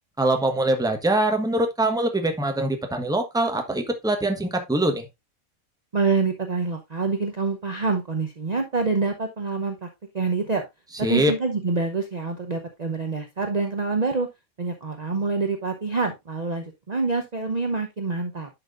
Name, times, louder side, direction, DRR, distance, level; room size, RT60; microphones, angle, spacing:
voice 1, 0.2-5.1 11.0-11.3, right 1 dB, 5° right, 1.1 m, -23 dB
voice 2, 5.9-9.9 10.1-10.7 11.0-14.3 14.6-18.5, right 4 dB, 35° right, 0.8 m, -26 dB
10.5 x 5.9 x 2.5 m
omnidirectional pair, 1.5 m